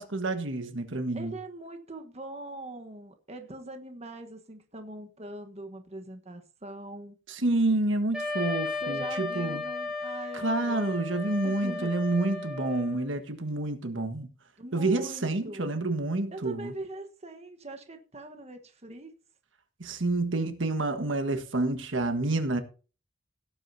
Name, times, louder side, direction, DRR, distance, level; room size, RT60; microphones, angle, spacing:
voice 1, 0.0-1.3 7.3-9.6 10.3-14.3 14.7-16.7 19.8-22.6, right 2 dB, 70° right, 1.5 m, -28 dB
voice 2, 1.1-7.2 8.8-10.9 11.4-11.9 14.6-15.7 16.3-19.1, right 1 dB, 35° right, 1.3 m, -42 dB
Wind instrument woodwind instrument, 8.1-13.0, left 3 dB, 5° right, 3.5 m, -35 dB
17.5 x 8.8 x 2.8 m
head